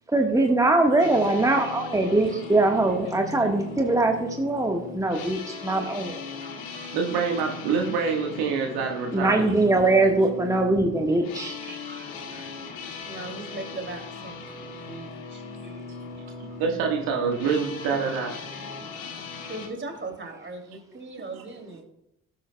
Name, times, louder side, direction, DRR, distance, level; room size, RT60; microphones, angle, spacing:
voice 1, 0.1-6.2 9.1-11.5 18.8-18.9, right 2 dB, 10° right, 3 dB, 1.4 m, -22 dB
sound 1, 1.0-19.7, left 4 dB, 65° left, 1.9 m, -39 dB
voice 2, 6.4-7.0 11.3-12.7 13.0-16.5 18.9-21.8, right 2 dB, 30° right, 3 dB, 2.6 m, -40 dB
voice 3, 6.9-9.8 16.6-18.4 21.3-21.4, right 5 dB, 70° right, 2 dB, 1.6 m, -26 dB
17.5 x 7.6 x 2.3 m, 0.82 s
figure-of-eight pair, 45°, 39 cm